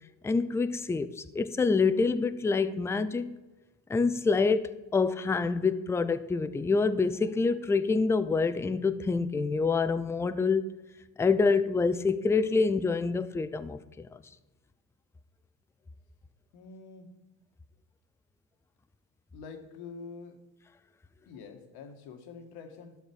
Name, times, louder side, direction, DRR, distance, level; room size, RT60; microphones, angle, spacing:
voice 1, 0.2-3.4 3.9-10.7 11.2-14.2, left 4 dB, 5° left, 0.3 m, -27 dB
voice 2, 16.5-17.1 19.3-20.4 21.3-23.0, left 5 dB, 75° left, 1.6 m, -46 dB
12.0 x 6.6 x 4.5 m
supercardioid pair, 100°, 39 cm